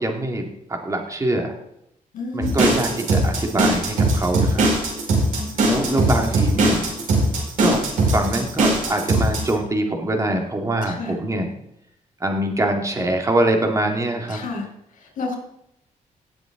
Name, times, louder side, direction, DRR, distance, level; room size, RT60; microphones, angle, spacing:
voice 1, 0.0-1.5 2.3-4.7 5.7-6.9 7.6-7.8 8.1-11.5 12.2-14.4, right 1 dB, 25° right, 3 dB, 2.2 m, -23 dB
voice 2, 2.1-2.8 5.3-6.2 10.8-11.2 14.3-15.3, left 3 dB, 70° left, 3 dB, 4.5 m, -31 dB
sound 1, 2.4-9.5, right 2 dB, 75° right, 4.9 m, -19 dB
17.5 x 7.7 x 3.8 m, 0.78 s
cardioid pair, 110°, 14 cm